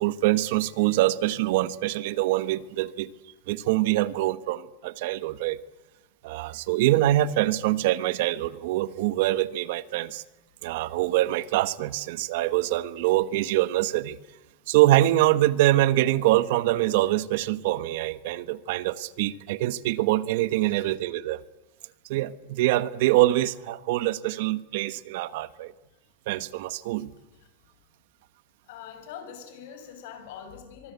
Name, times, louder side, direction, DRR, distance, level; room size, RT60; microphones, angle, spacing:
voice 1, 0.0-3.1 3.5-5.6 6.2-10.2 10.6-14.2 14.7-21.4 22.1-25.7 26.3-27.1, right 15 dB, 70° right, 16 dB, 1.3 m, -24 dB
voice 2, 28.7-30.9, left 8 dB, 70° left, 7 dB, 6.6 m, -43 dB
24.5 x 23.5 x 8.4 m, 1.1 s
supercardioid pair, 145°, 0 cm